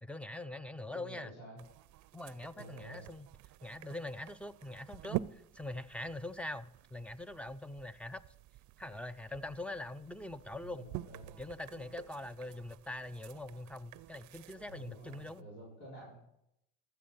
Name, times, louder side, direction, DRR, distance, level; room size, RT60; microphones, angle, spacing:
voice 1, 0.0-1.7 2.1-3.3 3.6-8.2 8.8-10.9 11.4-15.5, left 1 dB, 5° left, 15 dB, 0.5 m, -43 dB
voice 2, 0.9-1.6 2.5-3.1 10.6-11.4 14.6-16.5, right 1 dB, 90° left, -7 dB, 4.4 m, -51 dB
sound 1, 1.6-15.4, right 15 dB, 70° right, 0.5 m, -48 dB
14.0 x 6.8 x 5.5 m, 0.79 s
supercardioid pair, 75°, 31 cm